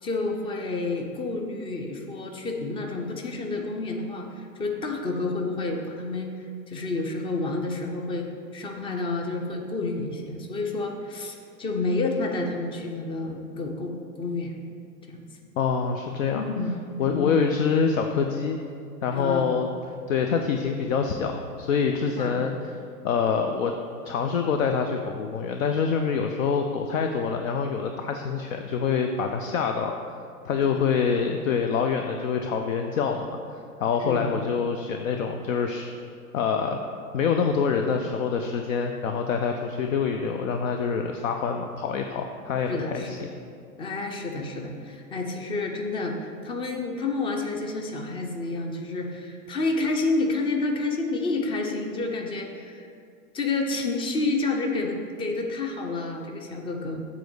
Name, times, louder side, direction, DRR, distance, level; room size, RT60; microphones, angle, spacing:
voice 1, 0.0-6.3 6.7-8.3 8.5-14.5 15.1-15.3 16.3-17.3 19.1-19.5 22.1-22.4 30.6-30.8 34.0-34.3 42.7-43.3 43.8-52.9 53.3-57.1, left 3 dB, 10° left, 2 dB, 0.5 m, -29 dB
voice 2, 15.6-16.4 17.0-18.6 19.0-19.7 20.1-22.5 23.0-23.7 24.1-29.9 30.4-33.3 33.8-35.9 36.3-36.8 37.1-43.2, left 6 dB, 60° left, 4 dB, 0.6 m, -25 dB
7.5 x 4.1 x 6.8 m, 2.3 s
figure-of-eight pair, 100°, 46 cm